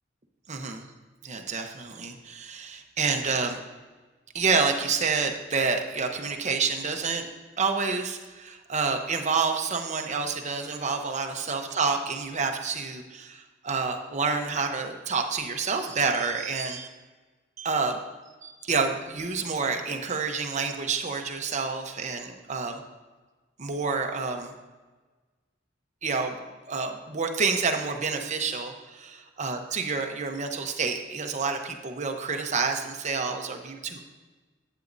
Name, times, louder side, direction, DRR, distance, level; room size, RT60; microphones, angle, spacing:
voice 1, 0.5-0.9 1.2-3.6 4.3-7.3 7.6-16.9 17.6-18.0 18.4-22.8 23.6-24.5 26.0-26.4 26.7-29.1 29.4-34.0, right 4 dB, 40° right, 4 dB, 0.9 m, -28 dB
11.0 x 8.4 x 2.6 m, 1.3 s
head